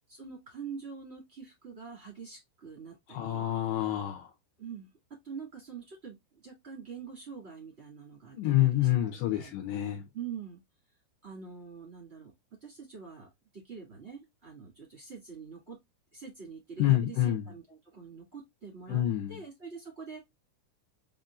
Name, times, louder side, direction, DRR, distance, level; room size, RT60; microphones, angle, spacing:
voice 1, 0.1-3.5 4.6-4.9 5.2-6.2 6.4-9.5 10.1-10.6 11.2-12.3 12.6-13.3 13.5-15.8 16.1-20.2, right 6 dB, 35° right, 1.0 m, -45 dB
voice 2, 3.1-4.3 8.3-10.0 16.8-17.4 18.9-19.3, left 14 dB, 80° left, 2.5 m, -27 dB
7.3 x 2.6 x 2.3 m
omnidirectional pair, 5.5 m